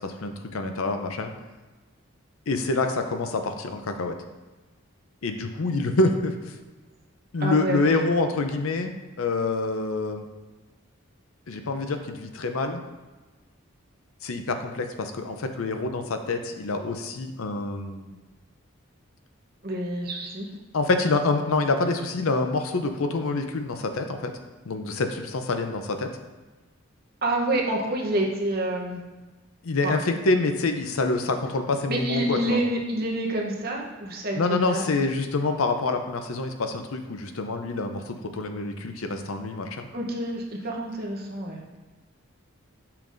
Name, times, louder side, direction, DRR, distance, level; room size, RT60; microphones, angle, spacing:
voice 1, 0.0-1.3 2.5-4.2 5.2-6.6 7.3-8.9 9.2-10.2 11.5-12.8 14.2-18.2 20.7-24.3 24.7-26.1 29.6-32.6 34.3-39.9, left 3 dB, 85° left, 6 dB, 0.6 m, -26 dB
voice 2, 7.4-7.9 19.6-20.5 27.2-29.0 29.8-29.9 31.9-34.9 39.9-41.6, right 1 dB, 45° right, -1 dB, 0.9 m, -28 dB
6.7 x 5.8 x 2.6 m, 1.2 s
head